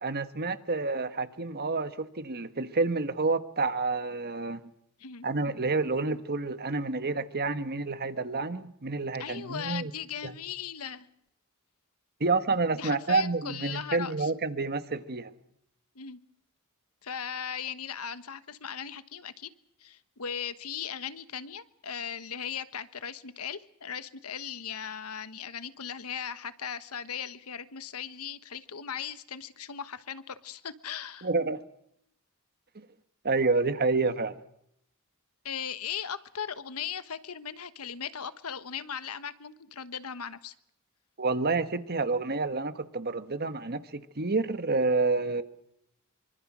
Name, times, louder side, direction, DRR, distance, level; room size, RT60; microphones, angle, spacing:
voice 1, 0.0-4.6 5.2-9.9 10.2-10.3 12.2-15.3 31.2-31.6 32.7-32.9 33.2-34.4 41.2-45.4, right 3 dB, 45° right, 10 dB, 1.5 m, -29 dB
voice 2, 9.2-11.1 12.7-14.3 15.9-16.2 17.0-19.5 19.8-31.3 35.4-40.5, left 8 dB, 90° left, 13 dB, 1.2 m, -38 dB
25.0 x 24.5 x 6.2 m, 0.75 s
head